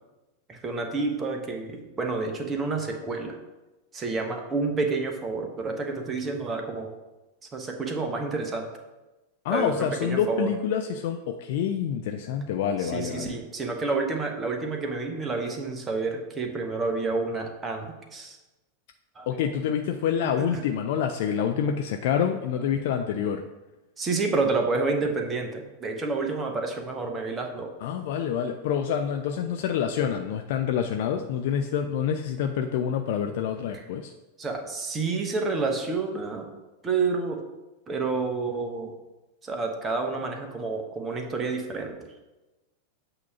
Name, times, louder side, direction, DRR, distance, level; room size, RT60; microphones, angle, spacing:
voice 1, 0.5-3.3 3.9-6.9 7.5-8.7 9.5-10.5 12.8-18.4 19.1-19.3 20.5-20.6 22.5-22.7 24.0-27.7 33.7-33.8 34.4-36.5 36.8-37.4 37.9-38.9 39.4-42.1, right 3 dB, 20° right, 3 dB, 1.0 m, -29 dB
voice 2, 9.4-13.4 19.3-23.4 27.8-34.1, left 8 dB, 50° left, 5 dB, 0.4 m, -27 dB
8.2 x 2.9 x 5.7 m, 1.1 s
figure-of-eight pair, 90°, 0 cm